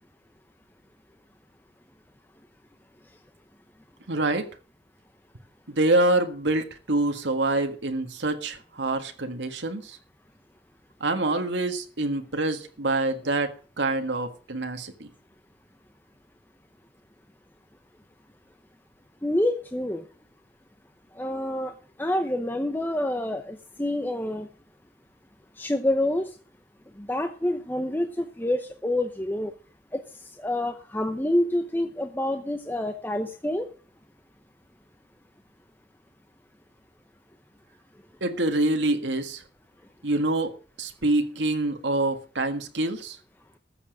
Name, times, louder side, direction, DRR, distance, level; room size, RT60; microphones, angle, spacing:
voice 1, 4.1-4.4 5.7-10.0 11.0-13.5 13.8-15.1 38.2-39.4 40.0-40.5 40.8-43.2, right 2 dB, 75° right, 1.7 m, -26 dB
voice 2, 19.2-20.0 21.1-21.7 22.0-24.5 25.6-26.3 27.0-29.5 29.9-30.0 30.4-33.7, left 1 dB, 10° left, 0.8 m, -27 dB
14.0 x 7.2 x 6.4 m
head